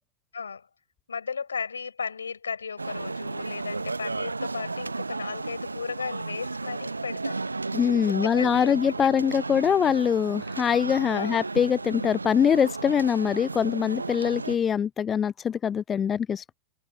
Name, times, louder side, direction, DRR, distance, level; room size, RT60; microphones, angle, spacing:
voice 1, 0.3-0.7 1.1-7.4 7.7-8.8 11.1-11.4, left 5 dB, 75° left, 7.5 m, -35 dB
sound 1, 2.8-14.6, right 3 dB, 80° right, 1.0 m, -34 dB
voice 2, 7.7-16.5, left 8 dB, 20° left, 0.3 m, -23 dB
figure-of-eight pair, 90°, 0 cm